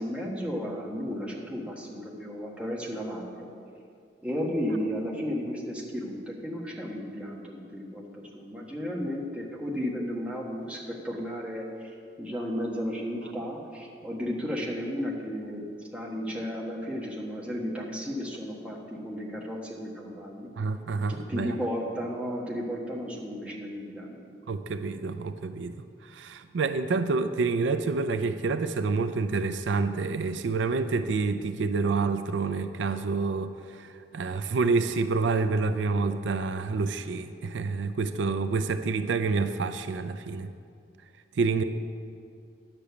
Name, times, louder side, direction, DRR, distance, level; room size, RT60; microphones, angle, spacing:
voice 1, 0.0-3.5 4.2-11.9 12.2-15.7 15.9-20.5 21.1-24.2, equal, 5° right, -3 dB, 1.3 m, -34 dB
voice 2, 20.6-21.6 24.5-25.7 26.0-40.5 41.4-41.6, right 4 dB, 85° right, 10 dB, 0.4 m, -28 dB
10.0 x 6.8 x 7.0 m, 2.4 s
head